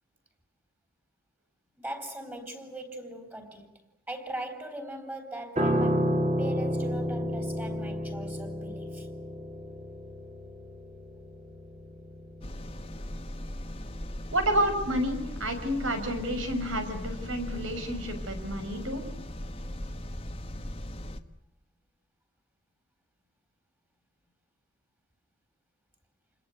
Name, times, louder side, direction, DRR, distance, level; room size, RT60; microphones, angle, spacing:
voice 1, 1.8-3.7 4.1-9.1, right 1 dB, 10° right, 4.0 m, -40 dB
Piano, 5.6-14.9 15.2-15.5, equal, 35° right, 4.0 m, -31 dB
sound 1, 12.4-21.2, left 1 dB, 30° left, 1.4 m, -39 dB
voice 2, 14.3-19.0, right 1 dB, 80° right, 6.1 m, -30 dB
29.0 x 21.5 x 9.4 m
head